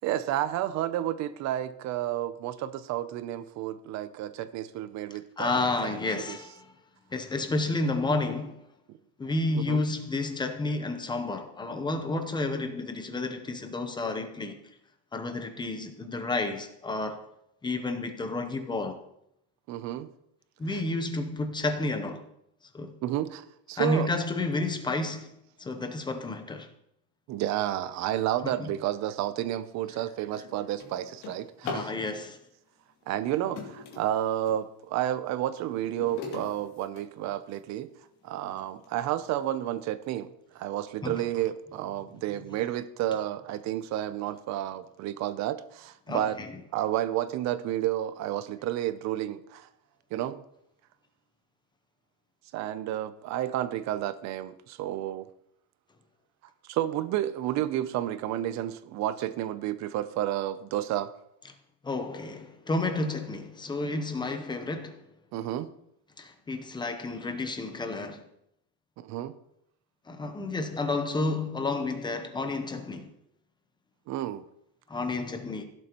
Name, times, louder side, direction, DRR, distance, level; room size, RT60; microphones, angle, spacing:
voice 1, 0.0-6.0 6.3-6.4 8.9-9.0 9.7-9.8 19.7-20.1 20.7-20.8 23.0-24.1 27.3-31.9 33.1-37.9 38.2-46.4 46.7-49.7 50.1-50.4 52.5-55.3 56.6-61.1 65.3-65.7 69.0-69.3 74.1-74.4, right 12 dB, 40° right, 0.6 m, -31 dB
voice 2, 5.4-6.7 7.1-8.6 9.2-14.6 15.1-17.3 17.6-19.0 20.6-22.2 22.7-22.9 23.8-25.3 25.6-26.7 28.4-28.7 31.6-32.4 41.0-41.2 46.1-46.5 61.8-65.0 66.2-68.2 70.1-73.1 74.9-75.6, left 2 dB, 10° left, 0.7 m, -31 dB
Drawer open or close, 29.3-29.5 30.0-32.0 33.0-34.6 35.2-37.6 38.2-38.3 38.8-38.9 39.3-39.7, left 4 dB, 60° left, 2.8 m, -42 dB
16.5 x 7.7 x 2.9 m
cardioid pair, 165°, 44 cm